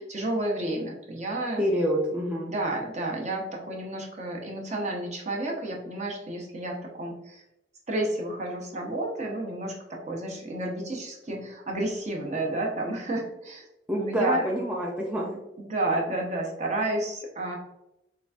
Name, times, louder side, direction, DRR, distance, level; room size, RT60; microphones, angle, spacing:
voice 1, 0.0-1.6 2.5-7.4 7.9-13.6 14.1-14.5 15.6-17.5, right 1 dB, 40° right, 0 dB, 0.7 m, -31 dB
voice 2, 1.6-2.5 13.9-15.4, equal, 5° right, -3 dB, 0.4 m, -27 dB
3.9 x 3.3 x 2.3 m, 0.91 s
head